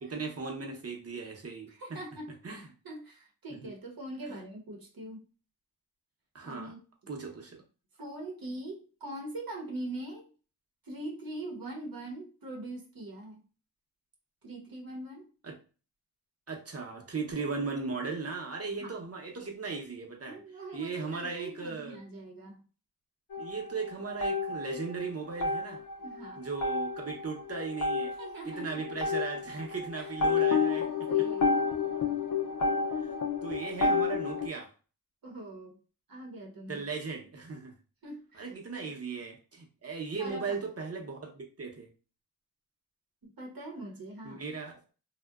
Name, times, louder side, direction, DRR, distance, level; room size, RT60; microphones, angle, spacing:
voice 1, 0.0-2.0 2.4-2.6 3.6-3.7 4.3-4.4 6.3-6.7 7.1-7.6 15.4-15.6 16.5-20.4 20.7-22.0 23.4-25.8 26.4-28.1 28.5-30.8 33.4-34.7 36.7-37.7 38.4-41.9 44.2-44.8, right 4 dB, 45° right, 1 dB, 0.7 m, -37 dB
voice 2, 1.7-5.3 6.4-6.8 8.0-10.3 10.8-13.4 14.4-15.3 18.8-18.9 20.2-22.6 26.0-26.4 28.1-29.0 29.6-30.5 30.9-31.5 35.2-35.8 36.1-36.8 38.0-38.8 40.1-40.6 43.2-44.4, right 1 dB, 80° right, -1 dB, 0.8 m, -43 dB
sound 1, 23.3-25.0 25.3-34.5, left 4 dB, 60° left, 0.5 m, -30 dB
2.6 x 2.1 x 2.3 m, 0.36 s
wide cardioid pair, 65°, 35 cm